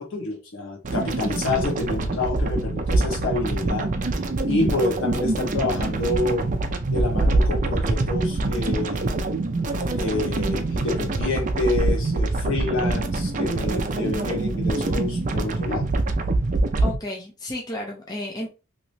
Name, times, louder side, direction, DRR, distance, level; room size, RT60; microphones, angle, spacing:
voice 1, 0.0-3.9 4.5-6.5 6.9-9.0 9.9-15.9, left 2 dB, 65° left, 1.1 m, -28 dB
sound 1, 0.8-17.0, right 2 dB, 40° right, 0.4 m, -25 dB
voice 2, 16.8-18.5, left 1 dB, 20° left, 0.6 m, -32 dB
3.1 x 2.8 x 2.6 m
head